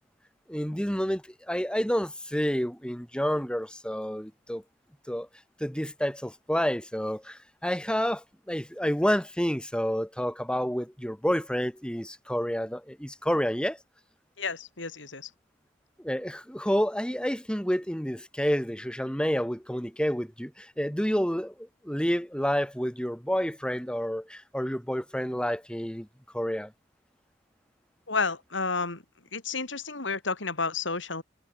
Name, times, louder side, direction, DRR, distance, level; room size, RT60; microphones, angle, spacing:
voice 1, 0.5-4.6 5.1-5.3 5.6-13.8 16.0-26.1 26.3-26.7, equal, 5° left, 7.3 m, -29 dB
voice 2, 14.4-15.3 28.1-29.0 29.3-31.2, left 4 dB, 80° left, 4.5 m, -31 dB
head